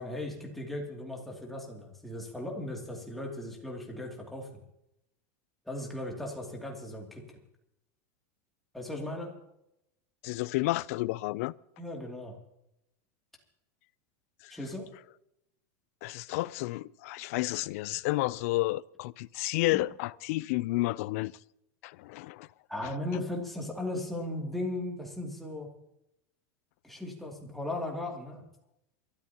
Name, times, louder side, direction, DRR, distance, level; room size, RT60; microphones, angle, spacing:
voice 1, 0.0-4.5 5.7-7.4 8.7-9.3 11.8-12.4 14.5-14.9 19.7-19.8 22.7-25.7 26.8-28.4, left 1 dB, ahead, 2.7 m, -37 dB
voice 2, 10.2-11.5 14.4-14.5 16.0-21.3 21.8-22.5 22.8-22.9, left 19 dB, 60° left, 0.4 m, -31 dB
28.0 x 13.0 x 2.9 m
supercardioid pair, 160°, 9 cm